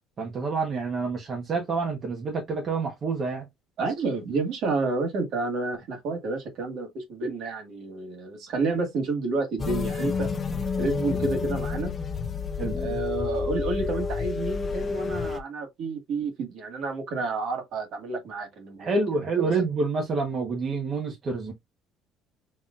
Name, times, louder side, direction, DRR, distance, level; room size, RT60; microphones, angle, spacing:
voice 1, 0.2-3.4 12.6-12.7 18.8-21.5, right 4 dB, 30° right, 1.2 m, -28 dB
voice 2, 3.8-10.3 10.8-11.9 12.8-18.9, right 3 dB, 50° right, 1.7 m, -30 dB
sound 1, 9.6-15.4, left 4 dB, 20° left, 0.5 m, -29 dB
5.5 x 3.1 x 2.5 m
cardioid pair, 170°, 0 cm